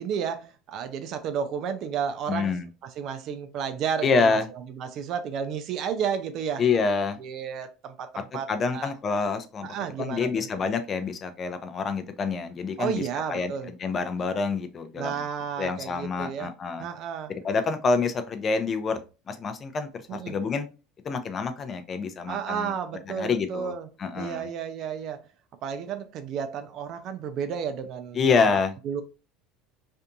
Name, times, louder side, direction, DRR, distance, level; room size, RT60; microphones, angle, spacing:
voice 1, 0.0-2.6 2.8-6.6 7.2-8.9 9.6-10.5 12.8-13.7 15.0-16.5 16.8-17.3 20.1-20.4 22.3-23.9 24.1-25.3 25.6-28.6 28.8-29.0, right 7 dB, 55° right, 0.4 m, -32 dB
voice 2, 2.3-2.7 4.0-4.5 6.6-7.2 8.5-15.2 15.6-16.8 17.4-19.0 19.3-20.7 21.0-22.7 23.2-23.7 24.0-24.5 28.1-28.7, left 4 dB, 35° left, 0.5 m, -27 dB
2.6 x 2.6 x 2.3 m
hypercardioid pair, 75°, 0 cm